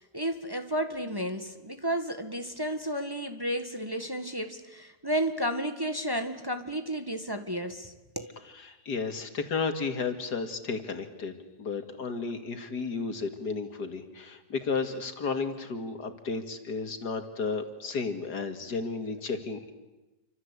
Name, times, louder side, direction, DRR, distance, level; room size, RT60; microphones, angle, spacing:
voice 1, 0.0-8.3, equal, 15° right, 7 dB, 1.6 m, -32 dB
voice 2, 8.6-19.7, left 4 dB, 80° left, 7 dB, 2.8 m, -33 dB
28.5 x 25.0 x 8.3 m, 1.1 s
omnidirectional pair, 1.7 m